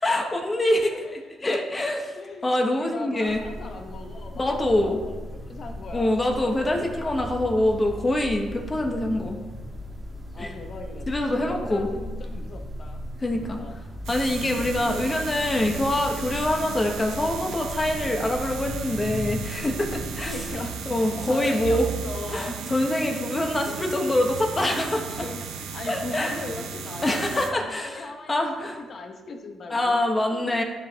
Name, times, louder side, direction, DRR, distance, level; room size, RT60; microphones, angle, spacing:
voice 1, 0.0-2.1 2.4-3.4 4.4-5.0 5.9-9.3 10.4-10.5 11.1-11.9 13.2-13.6 14.1-20.3 20.8-21.9 22.3-25.3 25.9-26.4 27.0-28.8 29.7-30.6, left 1 dB, 25° left, 2 dB, 1.5 m, -25 dB
voice 2, 0.7-1.4 2.1-7.1 10.3-13.0 13.3-13.8 14.5-15.1 20.2-22.7 23.6-24.1 25.0-25.5 25.7-28.5 28.8-30.6, left 3 dB, 50° left, 4 dB, 1.2 m, -39 dB
sound 1, 3.3-20.5, equal, 25° right, 2.0 m, -37 dB
sound 2, 14.0-27.5, right 6 dB, 85° right, 0.8 m, -35 dB
13.0 x 5.2 x 3.5 m, 1.2 s
cardioid pair, 90°, 0 cm